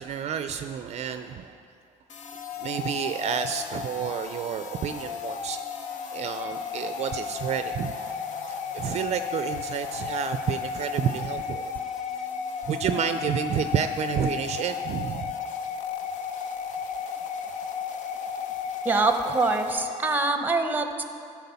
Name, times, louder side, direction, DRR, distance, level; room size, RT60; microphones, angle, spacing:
voice 1, 0.0-1.6 2.6-5.6 6.1-7.9 8.7-11.7 12.1-12.3 12.7-15.3, right 8 dB, 50° right, 8 dB, 0.4 m, -30 dB
sound 1, 2.1-20.3, left 6 dB, 65° left, 0.8 m, -34 dB
voice 2, 18.8-21.0, right 3 dB, 15° right, 6 dB, 0.8 m, -24 dB
13.5 x 4.6 x 6.9 m, 2.4 s
cardioid pair, 120°, 14 cm